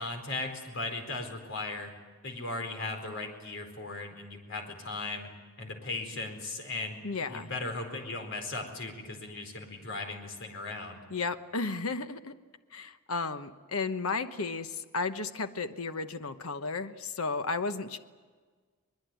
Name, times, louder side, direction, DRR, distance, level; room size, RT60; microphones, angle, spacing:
voice 1, 0.0-1.9 2.2-5.3 5.6-11.0, left 2 dB, 60° left, 4 dB, 4.5 m, -37 dB
voice 2, 7.0-7.5 11.1-12.3 12.7-18.0, left 4 dB, 80° left, 9 dB, 1.1 m, -33 dB
23.5 x 21.0 x 9.2 m, 1.5 s
head